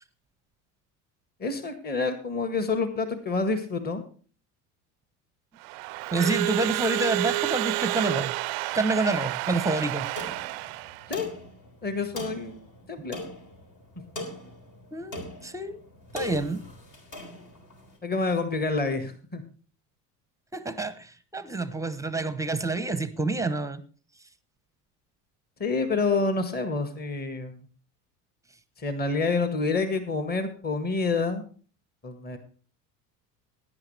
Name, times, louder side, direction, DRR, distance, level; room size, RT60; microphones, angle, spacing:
voice 1, 1.4-4.0 11.1-11.3 11.8-13.2 18.0-19.4 25.6-27.6 28.8-31.4 32.0-32.4, left 3 dB, 20° left, 9 dB, 1.6 m, -28 dB
Crowd / Alarm, 5.6-11.1, right 23 dB, 45° right, 0.5 m, -30 dB
voice 2, 6.1-8.3 8.7-10.1 14.9-15.8 16.1-16.6 20.5-23.8, right 3 dB, 5° right, 14 dB, 0.9 m, -28 dB
sound 1, 10.2-17.9, left 1 dB, 45° left, 3.7 m, -41 dB
17.5 x 9.9 x 3.3 m, 0.41 s
figure-of-eight pair, 70°, 48 cm